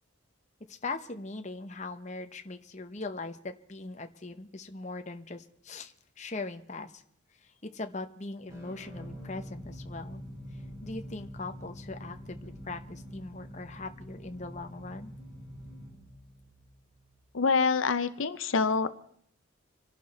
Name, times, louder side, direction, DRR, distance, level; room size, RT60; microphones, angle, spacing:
voice 1, 0.7-7.0 7.4-10.2 10.8-15.1, left 3 dB, 35° left, 7 dB, 0.9 m, -40 dB
sound 1, 8.5-17.2, equal, 20° right, 5.9 m, -45 dB
voice 2, 17.3-18.9, left 4 dB, 75° left, 12 dB, 0.7 m, -26 dB
27.0 x 11.5 x 4.2 m, 0.65 s
head